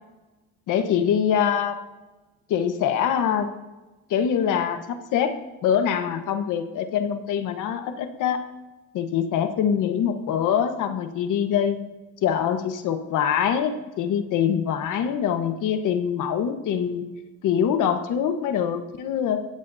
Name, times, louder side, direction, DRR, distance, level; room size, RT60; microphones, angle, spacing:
voice 1, 0.7-1.8 2.5-3.5 4.1-5.3 5.6-8.4 8.9-11.8 12.2-17.1 17.4-19.5, left 8 dB, 90° left, 7 dB, 1.4 m, -24 dB
22.0 x 15.5 x 2.8 m, 1.2 s
cardioid pair, 90°, 30 cm